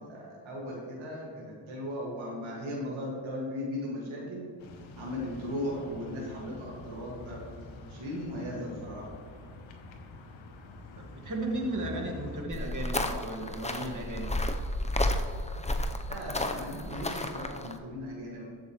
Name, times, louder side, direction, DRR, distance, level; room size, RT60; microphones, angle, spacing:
voice 1, 0.0-4.4 5.0-7.4 7.9-9.1 16.1-18.4, left 1 dB, 85° right, -3 dB, 2.2 m, -37 dB
sound 1, 4.6-12.5, left 2 dB, 80° left, 1.1 m, -47 dB
voice 2, 11.0-14.3, right 1 dB, 40° right, 0 dB, 2.1 m, -35 dB
sound 2, 12.5-17.7, left 1 dB, 15° left, 0.8 m, -31 dB
15.0 x 7.0 x 3.2 m, 2.2 s
cardioid pair, 50°, 46 cm